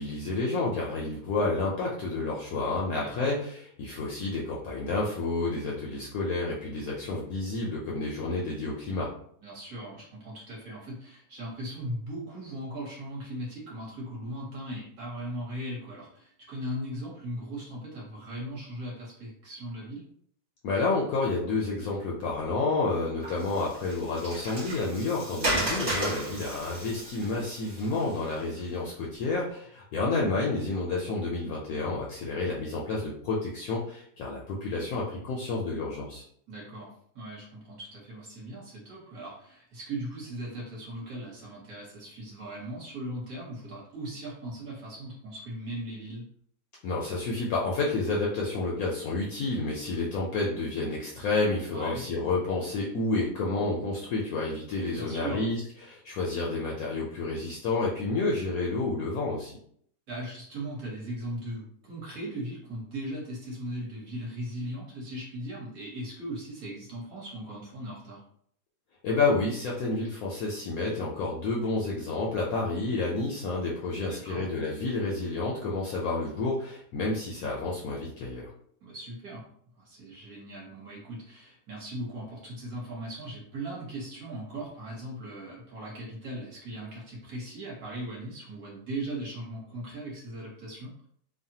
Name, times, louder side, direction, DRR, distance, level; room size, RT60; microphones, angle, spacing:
voice 1, 0.0-9.1 20.6-36.2 46.8-59.5 69.0-78.5, left 3 dB, 70° left, -3 dB, 0.9 m, -30 dB
voice 2, 3.0-3.3 9.4-20.1 25.4-25.7 36.5-46.2 51.7-52.0 54.9-55.4 60.1-68.2 74.0-74.4 78.8-79.5 79.8-90.9, right 1 dB, 60° right, -4 dB, 1.4 m, -38 dB
Water, 23.2-28.6, right 1 dB, 40° right, 1.2 m, -34 dB
3.1 x 2.1 x 2.7 m, 0.64 s
omnidirectional pair, 1.9 m